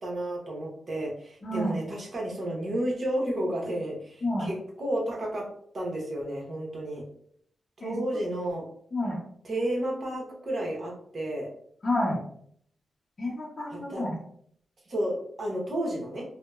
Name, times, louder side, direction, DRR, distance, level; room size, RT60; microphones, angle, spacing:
voice 1, 0.0-5.4 5.7-7.0 7.8-8.6 9.4-11.5 13.7-14.0 14.9-16.2, right 1 dB, 55° right, -1 dB, 0.9 m, -31 dB
voice 2, 1.4-1.8 4.2-4.5 7.8-8.0 8.9-9.2 11.8-12.2 13.2-14.2, left 1 dB, 50° left, -5 dB, 0.7 m, -29 dB
2.7 x 2.0 x 2.3 m, 0.64 s
cardioid pair, 70°, 0 cm